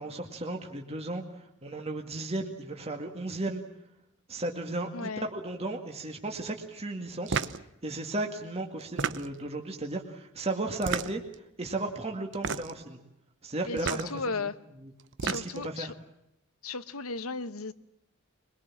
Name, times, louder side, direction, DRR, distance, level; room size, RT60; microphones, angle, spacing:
voice 1, 0.0-3.6 4.3-7.4 7.8-11.2 11.6-13.0 13.4-14.1 14.4-14.5 14.8-14.9 15.2-15.9, right 2 dB, 30° right, 2.1 m, -35 dB
voice 2, 4.9-5.3 13.7-14.6 15.2-15.9 16.6-17.7, left 4 dB, 90° left, 1.2 m, -35 dB
sound 1, 7.3-7.6 8.8-9.5 10.8-11.4 12.3-12.8 13.8-14.1 15.0-15.7, right 5 dB, 60° right, 0.9 m, -32 dB
24.0 x 22.0 x 7.4 m
head